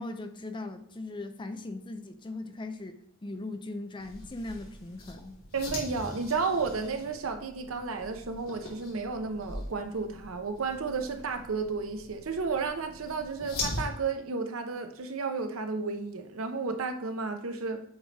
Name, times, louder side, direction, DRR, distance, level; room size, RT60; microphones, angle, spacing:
voice 1, 0.0-5.4, left 2 dB, 25° left, 0.5 m, -39 dB
sound 1, 4.0-13.9, left 2 dB, 80° left, 2.7 m, -41 dB
voice 2, 5.5-17.8, right 4 dB, 80° right, 0.8 m, -32 dB
7.9 x 3.3 x 4.0 m
head